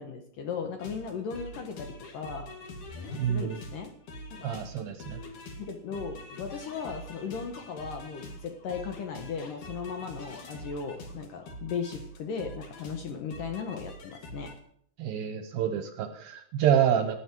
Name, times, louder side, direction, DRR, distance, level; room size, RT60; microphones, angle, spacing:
voice 1, 0.0-2.5 3.3-3.9 4.3-4.5 5.6-14.5, left 6 dB, 70° left, 4 dB, 2.2 m, -37 dB
sound 1, 0.8-14.6, left 1 dB, 55° left, 3.2 m, -44 dB
voice 2, 3.2-3.6 4.4-5.2 15.0-17.2, right 9 dB, 70° right, 7 dB, 2.4 m, -27 dB
18.5 x 10.0 x 4.5 m, 0.66 s
omnidirectional pair, 5.0 m